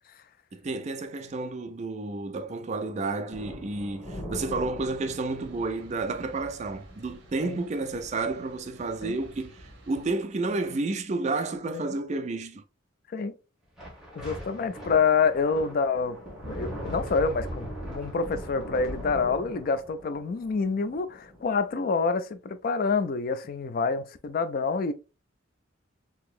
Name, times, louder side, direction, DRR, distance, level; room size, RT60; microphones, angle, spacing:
voice 1, 0.5-12.6, right 3 dB, 35° right, 0.4 m, -31 dB
sound 1, 3.3-7.6 7.9-8.1 8.5-8.7 9.3-9.8 13.8-21.8, equal, 5° right, 1.3 m, -40 dB
sound 2, 4.7-10.1, right 1 dB, 60° right, 1.1 m, -52 dB
voice 2, 14.2-16.2 16.5-24.9, left 5 dB, 45° left, 0.3 m, -27 dB
3.8 x 2.9 x 2.4 m
head